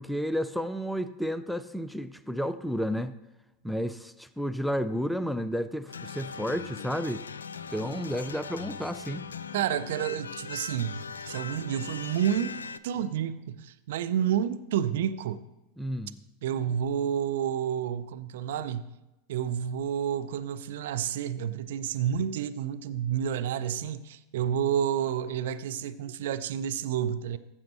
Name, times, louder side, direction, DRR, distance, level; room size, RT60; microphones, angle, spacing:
voice 1, 0.0-3.1 3.6-7.2 7.7-9.3 15.8-16.2, equal, ahead, 0.5 m, -31 dB
sound 1, 5.9-12.8, left 6 dB, 85° left, 0.3 m, -40 dB
voice 2, 9.5-12.6 12.8-15.4 16.4-18.9 19.3-27.4, right 9 dB, 65° right, 0.5 m, -30 dB
15.5 x 7.2 x 3.1 m
hypercardioid pair, 90°, 0 cm